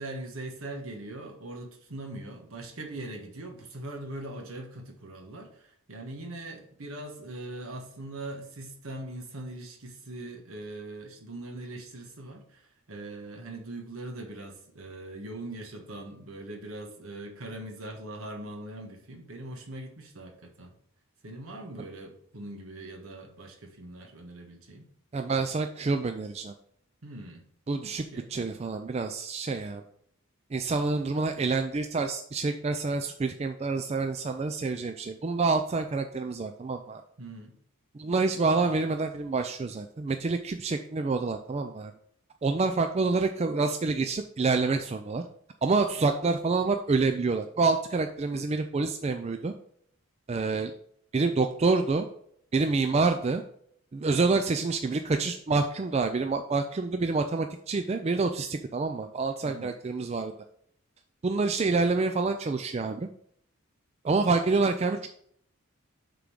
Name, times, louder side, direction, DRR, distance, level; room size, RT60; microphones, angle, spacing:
voice 1, 0.0-20.7 21.2-24.9 27.0-27.4 28.0-28.3 37.2-37.5 59.4-59.8, right 1 dB, 70° right, 3 dB, 1.3 m, -41 dB
voice 2, 25.1-26.5 27.7-28.0 28.3-29.8 30.5-37.0 37.9-41.9 42.4-45.2 45.6-49.5 50.3-50.7 51.1-52.1 52.5-53.4 53.9-60.3 61.2-63.1 64.0-65.1, right 3 dB, 30° right, 7 dB, 0.3 m, -27 dB
6.7 x 3.8 x 6.2 m, 0.66 s
head